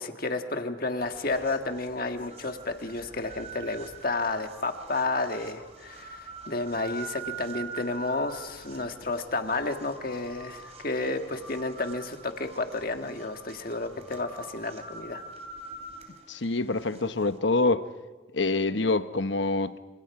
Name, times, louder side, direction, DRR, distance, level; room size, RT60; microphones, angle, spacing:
voice 1, 0.0-15.2, left 2 dB, 45° left, 1.7 m, -31 dB
sound 1, 1.0-17.4, right 4 dB, 35° right, 2.9 m, -45 dB
voice 2, 16.3-17.8 18.3-19.8, left 3 dB, 65° left, 1.0 m, -26 dB
29.0 x 26.5 x 4.9 m
head